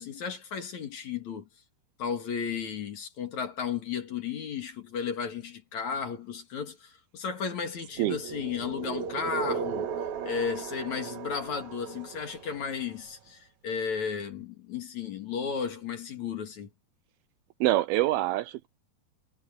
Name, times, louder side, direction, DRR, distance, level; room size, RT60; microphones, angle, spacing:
voice 1, 0.0-1.5 2.0-16.7, left 6 dB, 50° left, 2.9 m, -34 dB
sound 1, 7.9-12.9, right 7 dB, 60° right, 2.3 m, -36 dB
voice 2, 17.6-18.7, right 16 dB, 80° right, 2.3 m, -25 dB
omnidirectional pair, 4.8 m